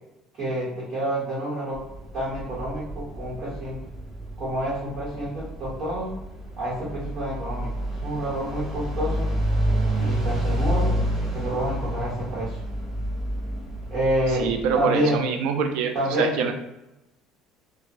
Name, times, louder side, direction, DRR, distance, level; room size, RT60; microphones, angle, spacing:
voice 1, 0.4-1.8 2.1-3.8 4.4-6.1 6.6-9.3 10.0-10.9 11.3-12.6 13.9-14.5 14.7-15.2 15.9-16.5, right 1 dB, 45° right, -8 dB, 1.2 m, -28 dB
sound 1, 1.7-14.8, right 1 dB, 15° right, 1.3 m, -29 dB
voice 2, 14.3-16.5, right 6 dB, 75° right, 5 dB, 0.4 m, -25 dB
2.9 x 2.2 x 2.5 m, 0.93 s
supercardioid pair, 95°, 0 cm